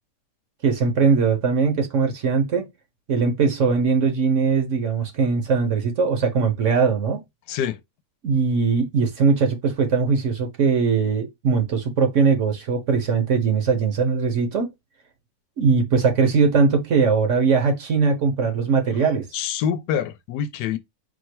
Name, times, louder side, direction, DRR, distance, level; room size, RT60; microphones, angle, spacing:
voice 1, 0.6-2.7 3.1-7.2 8.2-14.7 15.6-19.3, right 5 dB, 55° right, 1.1 m, -20 dB
voice 2, 7.5-7.8 19.3-20.8, left 8 dB, 85° left, 1.2 m, -25 dB
4.4 x 2.3 x 4.4 m
omnidirectional pair, 1.8 m